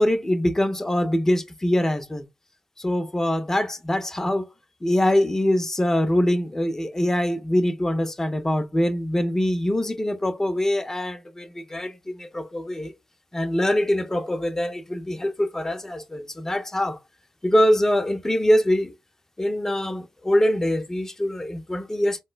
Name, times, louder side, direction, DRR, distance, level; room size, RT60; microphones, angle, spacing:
voice 1, 0.0-2.2 2.8-4.4 4.8-12.9 13.3-17.0 17.4-18.9 19.4-22.2, left 1 dB, 20° left, 0.7 m, -23 dB
4.2 x 2.2 x 2.4 m
supercardioid pair, 50°, 2 cm